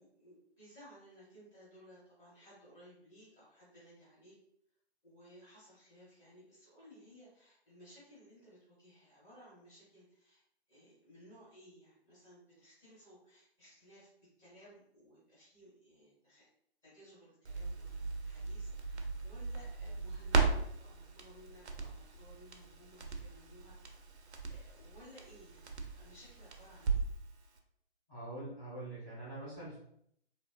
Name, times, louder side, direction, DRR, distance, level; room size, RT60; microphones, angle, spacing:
voice 1, 0.0-4.4 5.0-10.4 10.7-14.1 14.4-16.5 16.8-23.8 24.1-27.1, equal, 10° left, -9 dB, 0.9 m, -59 dB
Crackle, 17.5-27.3 27.6-27.7, right 4 dB, 75° right, 0.6 m, -37 dB
voice 2, 28.1-29.8, right 1 dB, 10° right, -17 dB, 0.4 m, -44 dB
2.7 x 2.1 x 2.4 m, 0.71 s
figure-of-eight pair, 145°, 33 cm